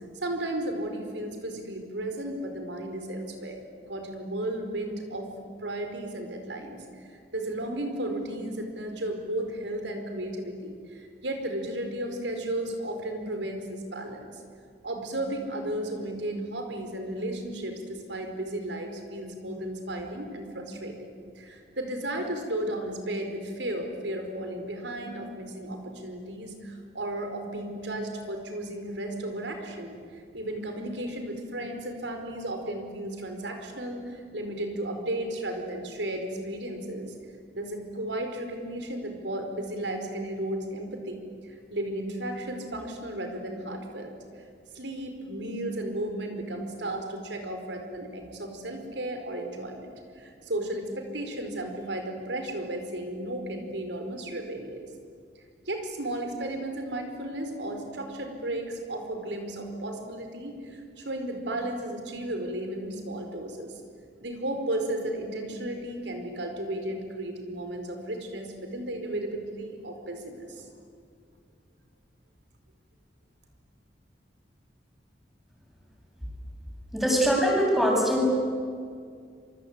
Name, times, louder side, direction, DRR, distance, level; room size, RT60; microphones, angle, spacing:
voice 1, 0.2-3.6 3.9-5.3 5.6-14.4 14.8-37.1 37.5-41.2 41.4-44.4 44.7-54.9 55.7-63.7 64.2-70.7, right 1 dB, 90° right, 5 dB, 4.9 m, -34 dB
voice 2, 76.9-78.3, equal, ahead, -2 dB, 7.9 m, -22 dB
27.0 x 24.5 x 8.9 m, 2.2 s
head